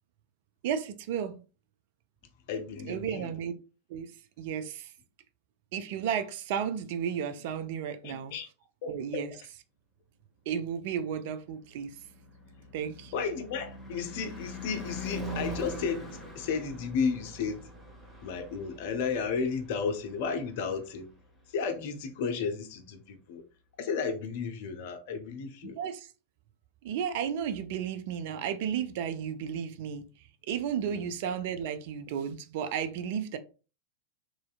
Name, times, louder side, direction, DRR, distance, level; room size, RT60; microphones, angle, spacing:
voice 1, 0.6-1.4 2.8-3.5 3.9-4.9 5.7-8.3 8.9-9.3 10.5-12.0 12.7-13.2 25.8-26.1 26.8-30.1 30.5-33.4, right 8 dB, 50° right, 0.3 m, -33 dB
voice 2, 2.5-3.3 8.0-8.5 8.8-9.2 13.1-17.7 18.2-21.1 21.5-23.4 23.8-25.8 30.8-31.0, left 5 dB, 50° left, 0.5 m, -33 dB
Car passing by / Truck / Engine, 11.2-21.4, equal, 5° left, 1.0 m, -43 dB
3.0 x 2.7 x 2.3 m
figure-of-eight pair, 90°, 0 cm